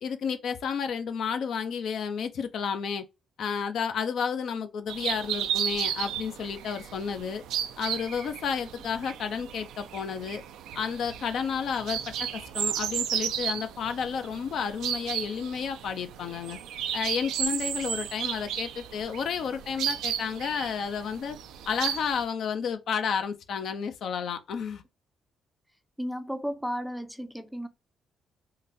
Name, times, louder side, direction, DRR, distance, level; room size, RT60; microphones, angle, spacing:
voice 1, 0.0-3.0 3.4-7.4 7.8-10.4 10.7-16.6 16.9-21.4 21.7-24.8, left 6 dB, 65° left, 0.5 m, -31 dB
sound 1, 4.9-22.2, right 9 dB, 90° right, 0.4 m, -34 dB
voice 2, 26.0-27.7, equal, ahead, 0.4 m, -34 dB
3.8 x 2.2 x 2.6 m
cardioid pair, 90°, 0 cm